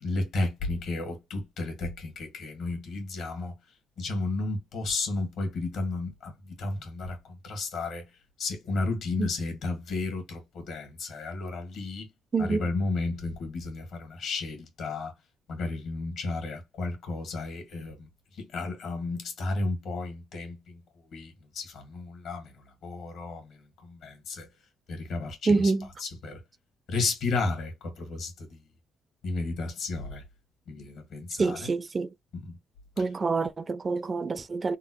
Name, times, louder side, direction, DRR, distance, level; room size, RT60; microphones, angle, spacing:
voice 1, 0.0-3.5 4.0-8.0 8.4-12.1 12.4-15.1 15.5-18.1 18.4-20.8 21.1-22.5 22.8-23.6 23.8-24.5 24.9-25.6 26.0-26.4 26.9-28.6 29.2-30.2 30.7-31.7, left 3 dB, 75° left, 1.6 m, -33 dB
voice 2, 12.3-12.7 25.5-25.9 31.4-32.1 33.0-34.8, right 4 dB, 35° right, 0.4 m, -26 dB
3.5 x 2.1 x 2.9 m
cardioid pair, 90°, 0 cm